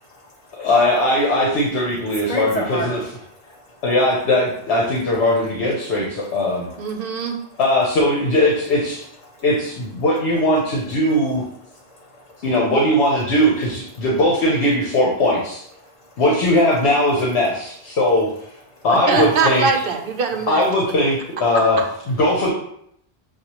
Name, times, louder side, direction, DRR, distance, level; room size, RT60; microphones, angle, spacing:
voice 1, 0.5-3.0 3.8-6.6 7.6-9.0 9.4-11.4 12.4-15.5 16.2-17.7 18.0-18.3 18.8-19.7 20.5-21.8 22.1-22.5, left 1 dB, 80° left, -3 dB, 1.1 m, -19 dB
voice 2, 2.2-3.0 3.3-3.8 7.5-7.6 9.2-9.4 11.8-12.4 18.7-18.8 19.2-19.3, equal, 40° left, -2 dB, 1.0 m, -30 dB
voice 3, 6.8-7.4 18.9-20.6, right 4 dB, 60° right, 3 dB, 0.9 m, -22 dB
6.5 x 2.4 x 3.0 m, 0.71 s
omnidirectional pair, 1.1 m